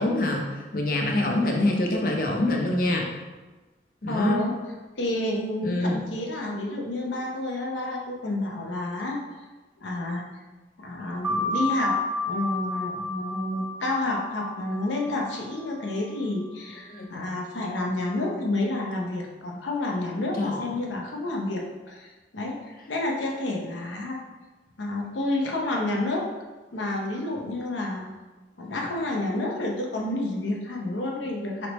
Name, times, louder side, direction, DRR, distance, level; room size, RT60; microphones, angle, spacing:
voice 1, 0.0-3.1 4.0-4.4 5.6-6.0 16.9-17.1 20.4-20.8, left 1 dB, 50° left, 1 dB, 0.6 m, -25 dB
voice 2, 4.1-4.5 5.0-9.2 9.8-10.3 10.8-12.0 12.3-24.2 24.8-26.3 26.7-28.1 28.6-31.7, left 2 dB, 90° left, -1 dB, 0.8 m, -29 dB
sound 1, 11.2-16.4, left 2 dB, 10° right, 0.3 m, -31 dB
4.1 x 3.3 x 3.0 m, 1.2 s
head